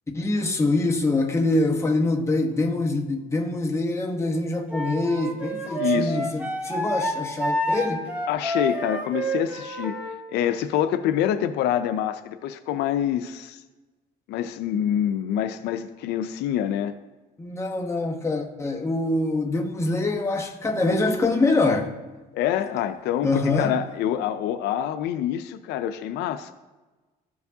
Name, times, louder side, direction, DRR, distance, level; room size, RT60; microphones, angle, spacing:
voice 1, 0.1-8.1 17.4-21.9 23.2-23.7, left 2 dB, 15° left, 1.0 m, -24 dB
Wind instrument woodwind instrument, 4.7-10.1, right 1 dB, 10° right, 1.2 m, -28 dB
voice 2, 5.8-6.3 8.3-10.0 10.3-13.6 14.3-16.9 22.3-23.3 23.6-26.5, left 10 dB, 80° left, 0.5 m, -26 dB
13.5 x 4.7 x 2.7 m
cardioid pair, 110°, 17 cm